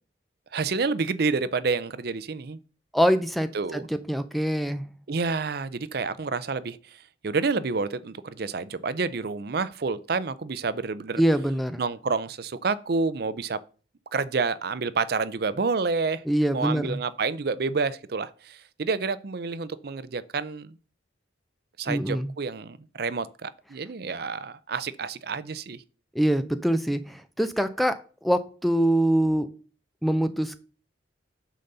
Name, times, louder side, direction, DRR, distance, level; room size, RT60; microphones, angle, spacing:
voice 1, 0.5-2.6 3.5-3.9 5.1-11.2 11.8-13.6 14.1-16.2 16.5-20.8 21.8-25.8, right 4 dB, 55° right, 0.5 m, -29 dB
voice 2, 2.9-4.8 11.2-11.8 16.3-17.0 21.9-22.3 26.1-29.5 30.0-30.6, equal, ahead, 0.5 m, -24 dB
10.0 x 4.1 x 6.7 m
head